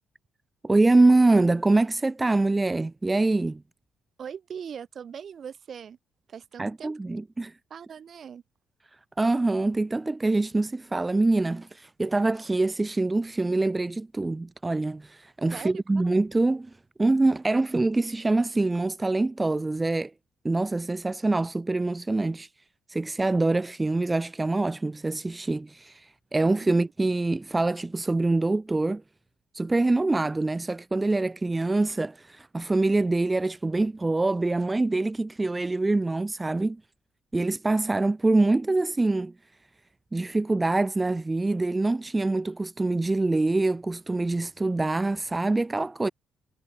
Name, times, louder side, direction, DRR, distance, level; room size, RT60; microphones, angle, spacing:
voice 1, 0.6-3.6 6.6-7.5 9.2-16.7 17.0-20.1 20.4-22.5 22.9-29.0 29.5-36.8 37.3-39.3 40.1-46.1, right 2 dB, 20° right, 0.7 m, -25 dB
voice 2, 4.2-6.0 6.3-6.9 7.7-8.4 15.5-15.8, right 7 dB, 55° right, 2.3 m, -40 dB
supercardioid pair, 65°, 0 cm